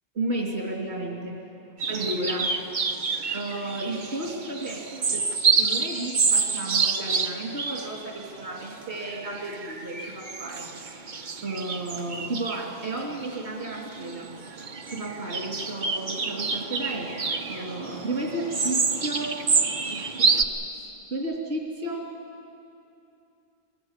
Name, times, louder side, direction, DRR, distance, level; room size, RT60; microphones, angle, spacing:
voice 1, 0.2-1.4 1.9-2.5 3.3-4.8 5.1-10.7 11.4-14.3 14.9-17.1 17.5-19.3 19.9-20.5 20.8-22.1, right 2 dB, 75° right, -2 dB, 3.0 m, -33 dB
sound 1, 1.8-20.4, right 4 dB, 50° right, 1.1 m, -28 dB
23.5 x 20.0 x 8.1 m, 2.6 s
omnidirectional pair, 1.1 m